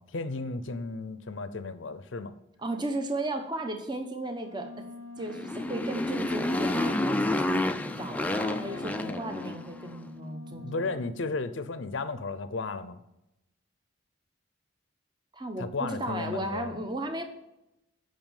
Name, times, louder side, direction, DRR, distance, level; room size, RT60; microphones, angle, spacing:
voice 1, 0.0-2.3 8.3-9.2 10.4-13.0 15.6-16.8, left 3 dB, 75° left, 12 dB, 0.7 m, -35 dB
voice 2, 2.6-4.8 5.2-7.7 8.0-11.0 15.3-17.2, right 1 dB, 20° right, 5 dB, 1.0 m, -35 dB
Wind instrument woodwind instrument, 4.3-11.2, left 3 dB, 80° right, 4.0 m, -46 dB
Motorcycle, 5.2-9.9, left 1 dB, 5° left, 0.4 m, -29 dB
8.9 x 5.6 x 7.3 m, 0.89 s
head